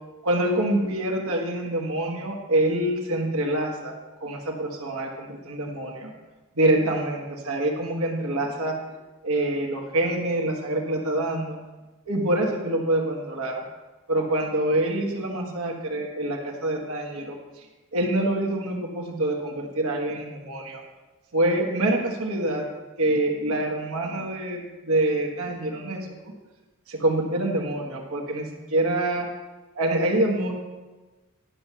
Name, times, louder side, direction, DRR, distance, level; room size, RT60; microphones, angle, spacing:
voice 1, 0.2-3.9 4.2-6.1 6.5-8.8 9.2-11.6 12.1-13.6 14.1-17.7 17.9-20.8 21.3-22.6 23.0-26.3 26.9-29.3 29.7-30.5, right 1 dB, 75° right, 0 dB, 1.5 m, -26 dB
11.0 x 6.2 x 5.6 m, 1.2 s
head